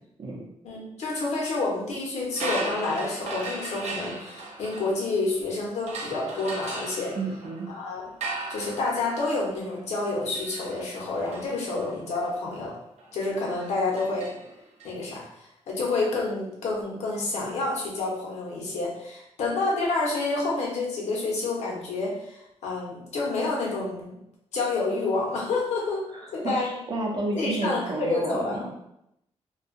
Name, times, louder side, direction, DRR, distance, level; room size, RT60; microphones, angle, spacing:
voice 1, 0.6-7.1 7.7-8.0 8.5-12.7 13.1-14.3 14.8-24.2 24.5-26.0 26.3-26.8 27.3-28.7, left 3 dB, 90° left, -3 dB, 0.8 m, -29 dB
sound 1, 2.3-5.4 5.9-14.9, right 2 dB, 85° right, 0.6 m, -38 dB
voice 2, 7.2-7.7 26.1-28.7, right 2 dB, 40° right, -1 dB, 0.6 m, -31 dB
2.6 x 2.3 x 2.5 m, 0.81 s
wide cardioid pair, 150°, 11 cm